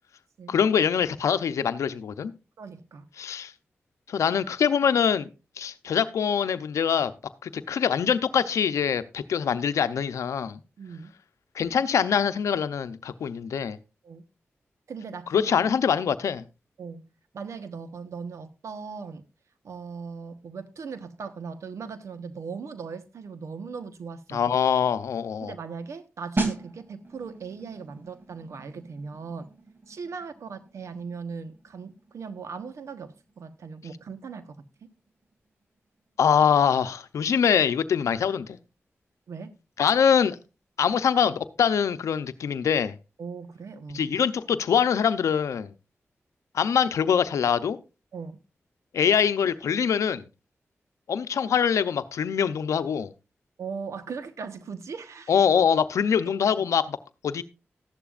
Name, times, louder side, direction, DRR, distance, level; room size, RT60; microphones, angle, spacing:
voice 1, 0.5-2.3 3.2-3.5 4.1-5.3 5.6-7.1 7.4-10.6 11.5-13.8 15.3-16.4 24.3-25.5 36.2-38.6 39.8-40.4 40.8-43.0 43.9-45.7 46.5-47.8 48.9-50.2 51.1-53.1 55.3-57.0 57.2-57.4, left 7 dB, 90° left, 0.7 m, -24 dB
voice 2, 2.6-3.1 10.8-11.1 14.0-14.2 14.9-15.5 16.8-17.1 17.3-19.3 19.6-24.4 25.4-29.5 29.9-34.9 39.3-39.5 43.2-44.0 48.1-48.4 53.6-55.3, right 5 dB, 80° right, 1.2 m, -39 dB
sound 1, 26.4-36.9 37.1-37.4, right 3 dB, 45° right, 2.9 m, -38 dB
14.5 x 11.5 x 2.5 m
cardioid pair, 40°, 5 cm